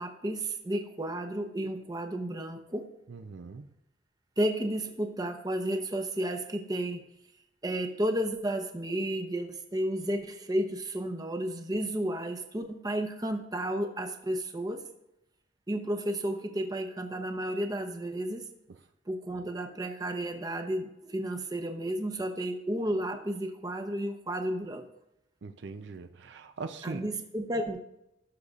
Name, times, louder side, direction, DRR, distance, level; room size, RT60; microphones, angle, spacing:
voice 1, 0.0-2.9 4.4-7.0 7.6-14.9 15.7-18.4 19.1-24.8 26.8-27.8, right 1 dB, 20° right, 0.8 m, -32 dB
voice 2, 3.1-3.7 25.4-27.1, right 4 dB, 70° right, 0.5 m, -41 dB
17.5 x 6.5 x 2.4 m
head